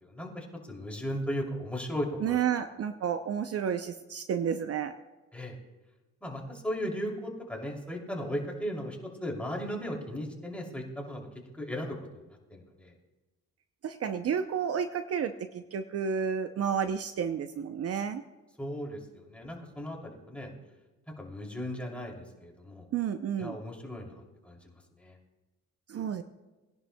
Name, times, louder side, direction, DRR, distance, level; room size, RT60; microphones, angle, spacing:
voice 1, 0.0-2.4 5.3-5.6 6.2-11.3 11.6-12.0 12.5-12.9 18.6-20.5 21.2-22.8 23.4-25.1, equal, 5° left, -1 dB, 2.8 m, -36 dB
voice 2, 2.2-4.9 13.8-18.2 22.9-23.6 25.9-26.2, right 8 dB, 50° right, 9 dB, 0.6 m, -31 dB
20.5 x 11.0 x 2.2 m, 1.2 s
cardioid pair, 90°, 30 cm